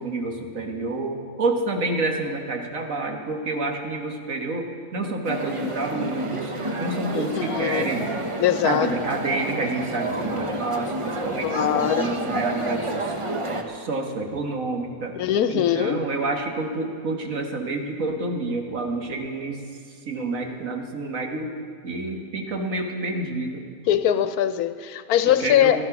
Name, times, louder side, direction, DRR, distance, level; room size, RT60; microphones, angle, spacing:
voice 1, 0.0-6.5 6.8-8.1 8.6-13.1 13.7-15.1 15.5-19.6 20.0-21.5 21.8-23.6 25.2-25.9, right 2 dB, 65° right, 3 dB, 1.7 m, -28 dB
sound 1, 5.2-13.6, right 1 dB, 25° right, 0.9 m, -29 dB
voice 2, 7.1-7.9 8.4-8.9 11.4-12.1 15.1-16.0 23.9-25.8, left 10 dB, 90° left, 12 dB, 1.2 m, -22 dB
15.5 x 12.0 x 5.9 m, 2.3 s
omnidirectional pair, 1.5 m